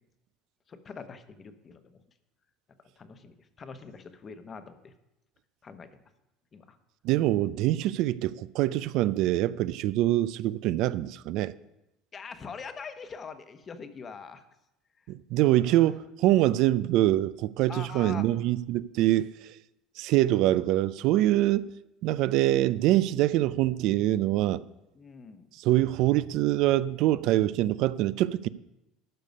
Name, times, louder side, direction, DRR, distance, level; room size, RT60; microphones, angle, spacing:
voice 1, 0.7-2.0 3.0-4.9 5.6-6.0 6.5-6.8 12.1-14.5 15.6-15.9 17.7-18.3 24.9-25.5, left 5 dB, 35° left, 1.0 m, -43 dB
voice 2, 7.0-11.5 15.1-19.5 20.0-21.7 22.0-24.6 25.6-28.5, right 15 dB, 65° right, 0.4 m, -24 dB
12.5 x 6.6 x 5.3 m
supercardioid pair, 105°, 0 cm